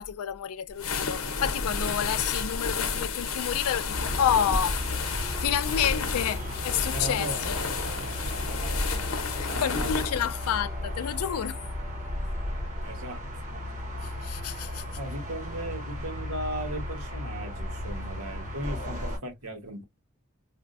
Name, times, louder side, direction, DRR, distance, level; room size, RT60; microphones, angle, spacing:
voice 1, 0.0-4.8 5.4-7.6 8.1-8.6 9.4-11.6 14.0-14.8, left 9 dB, 85° left, 0.4 m, -30 dB
sound 1, 0.7-10.6, left 4 dB, 70° left, 0.8 m, -31 dB
sound 2, 3.9-19.2, left 1 dB, 35° right, 1.2 m, -35 dB
voice 2, 6.9-7.4 8.5-9.2 9.5-9.9 12.8-13.2 13.5-13.6 15.0-19.8, right 1 dB, 85° right, 1.4 m, -37 dB
sound 3, 8.1-12.9, right 3 dB, ahead, 0.7 m, -52 dB
4.8 x 2.2 x 2.5 m
head